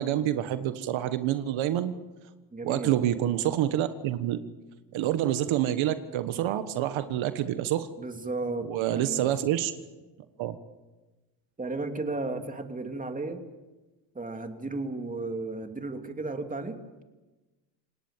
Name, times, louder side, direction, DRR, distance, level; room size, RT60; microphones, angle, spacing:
voice 1, 0.0-1.9 2.6-4.4 4.9-7.9 8.7-9.7 10.4-10.5, right 12 dB, 75° right, 10 dB, 1.5 m, -27 dB
voice 2, 2.5-3.0 8.0-9.3 11.6-13.4 14.1-16.8, right 3 dB, 15° right, 5 dB, 2.8 m, -34 dB
28.0 x 18.5 x 7.4 m, 1.1 s
cardioid pair, 100°, 47 cm